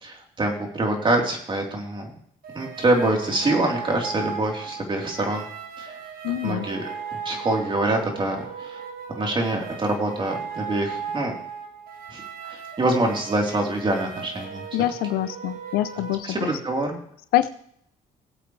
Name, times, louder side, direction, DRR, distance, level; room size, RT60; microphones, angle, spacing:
voice 1, 0.0-2.1 2.5-5.5 5.8-6.0 6.4-6.8 7.3-8.8 9.1-11.3 12.1-14.6 15.9-17.0, right 2 dB, 35° right, 1 dB, 3.7 m, -25 dB
sound 1, 2.4-16.1, right 6 dB, 75° right, 2.3 m, -37 dB
voice 2, 6.2-6.7 14.7-16.5 17.3-17.5, left 14 dB, 90° left, 13 dB, 0.6 m, -25 dB
19.5 x 8.1 x 3.3 m, 0.68 s
cardioid pair, 85°, 15 cm